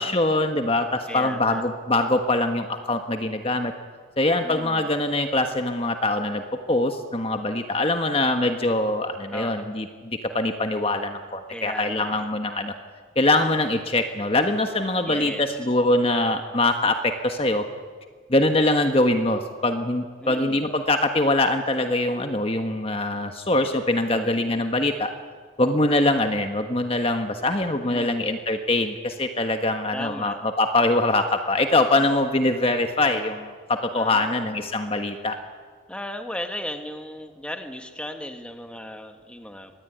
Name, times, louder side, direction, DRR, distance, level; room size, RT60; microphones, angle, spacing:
voice 1, 0.0-3.7 4.2-12.7 13.1-17.6 18.3-25.1 25.6-35.4, left 2 dB, 30° left, 6 dB, 1.5 m, -23 dB
voice 2, 1.1-1.6 4.4-4.9 9.3-9.7 11.5-12.3 15.1-15.4 20.2-20.7 24.1-24.5 27.8-28.4 29.9-30.4 33.9-34.7 35.9-39.7, left 1 dB, 5° left, 5 dB, 1.6 m, -36 dB
24.5 x 20.0 x 9.4 m, 1.5 s
head